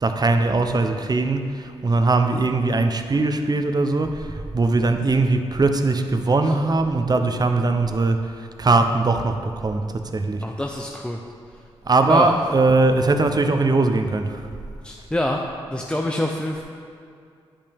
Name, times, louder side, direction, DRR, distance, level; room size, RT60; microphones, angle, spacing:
voice 1, 0.0-10.5 11.8-14.5, right 3 dB, 40° right, 7 dB, 0.7 m, -20 dB
voice 2, 10.4-11.2 12.1-12.3 14.8-15.4 15.7-16.6, left 1 dB, 10° left, 1 dB, 0.6 m, -25 dB
9.9 x 5.4 x 3.5 m, 2.3 s
supercardioid pair, 50°, 11 cm